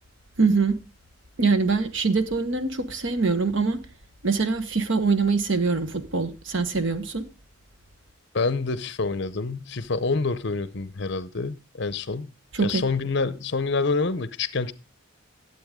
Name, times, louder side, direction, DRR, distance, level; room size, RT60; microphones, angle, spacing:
voice 1, 0.4-0.7 1.4-3.8 4.2-7.2 12.5-12.8, right 4 dB, 60° right, 1.0 m, -23 dB
voice 2, 8.3-12.3 12.6-14.7, left 4 dB, 55° left, 0.7 m, -27 dB
12.5 x 7.8 x 3.6 m
head